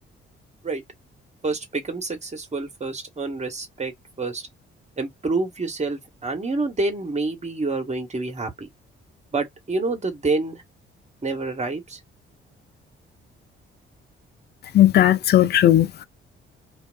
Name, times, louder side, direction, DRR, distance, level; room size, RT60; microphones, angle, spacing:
voice 1, 1.4-3.9 4.2-4.5 5.0-8.7 9.3-10.6 11.2-12.0, right 3 dB, 25° right, 1.0 m, -27 dB
voice 2, 14.7-16.0, left 12 dB, 35° left, 0.4 m, -16 dB
2.4 x 2.3 x 2.2 m
figure-of-eight pair, 40°, 30 cm